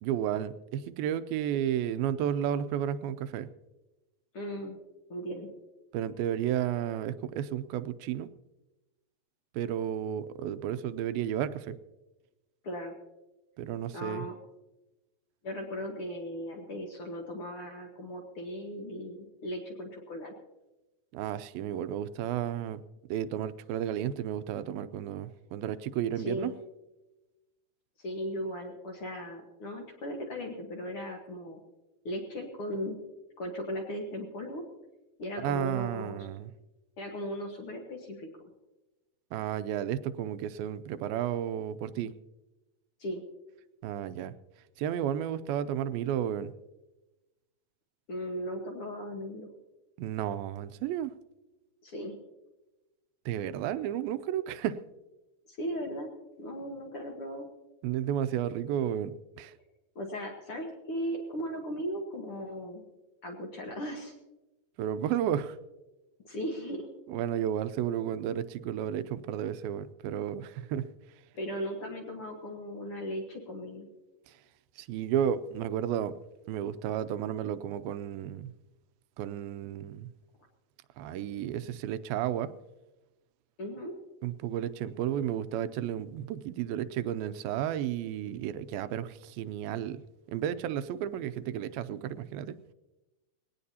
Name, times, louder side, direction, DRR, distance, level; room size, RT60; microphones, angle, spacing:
voice 1, 0.0-3.5 5.9-8.3 9.5-11.8 13.6-14.3 21.1-22.8 23.1-26.5 35.4-36.5 39.3-42.1 43.8-44.3 44.8-46.5 50.0-51.1 53.3-54.8 57.8-59.5 64.8-65.6 67.1-70.9 74.3-74.4 74.8-76.2 76.5-78.5 79.2-80.1 81.0-82.5 84.2-90.0 90.3-92.6, right 10 dB, 85° right, 13 dB, 2.4 m, -32 dB
voice 2, 4.3-4.8 5.1-5.5 12.6-12.9 13.9-14.4 15.4-20.3 26.2-26.6 28.0-31.6 32.1-33.0 33.4-34.6 35.2-36.3 37.0-38.3 43.0-43.2 48.1-49.5 51.8-52.2 55.5-56.1 56.4-57.5 60.0-62.8 63.2-64.1 66.2-66.9 71.3-73.9 83.6-83.9, equal, 55° left, 1 dB, 1.6 m, -37 dB
20.5 x 17.5 x 2.8 m, 1.1 s
omnidirectional pair, 4.2 m